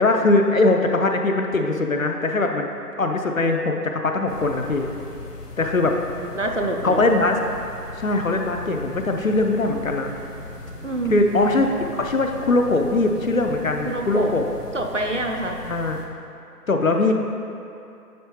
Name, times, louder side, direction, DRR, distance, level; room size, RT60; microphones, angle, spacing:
voice 1, 0.0-2.7 3.0-4.9 5.6-5.9 6.8-7.4 8.0-10.1 11.1-11.7 11.9-14.5 15.6-16.0 16.7-17.1, left 2 dB, 60° left, 4 dB, 0.5 m, -21 dB
sound 1, 4.3-16.1, left 2 dB, 75° left, 1.0 m, -39 dB
voice 2, 6.4-7.1 10.8-11.3 13.8-14.4 14.7-15.6, right 1 dB, 55° right, 2 dB, 0.5 m, -26 dB
9.2 x 4.1 x 3.0 m, 2.7 s
figure-of-eight pair, 175°, 48 cm